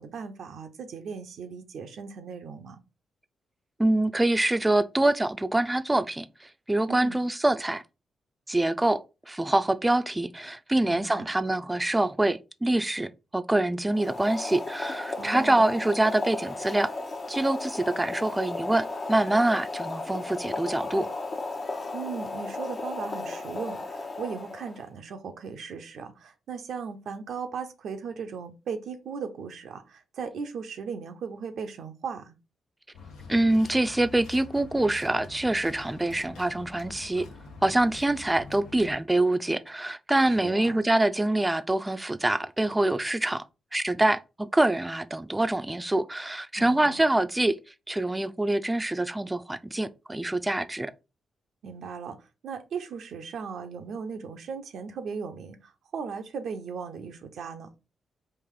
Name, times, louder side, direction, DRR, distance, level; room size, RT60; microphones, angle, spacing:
voice 1, 0.0-2.8 6.9-7.2 10.8-11.3 15.2-15.7 21.9-32.4 40.3-40.8 46.5-47.0 51.6-57.7, right 6 dB, 75° right, 0.5 m, -37 dB
voice 2, 3.8-7.8 8.5-16.9 17.3-21.1 33.3-37.3 37.6-43.4 43.7-47.6 47.9-50.9, right 1 dB, 15° right, 0.4 m, -25 dB
Boiling, 13.9-24.9, left 3 dB, 50° left, 0.7 m, -35 dB
sound 1, 32.9-39.0, left 4 dB, 85° left, 0.7 m, -46 dB
3.2 x 2.5 x 3.6 m
supercardioid pair, 50°, 0 cm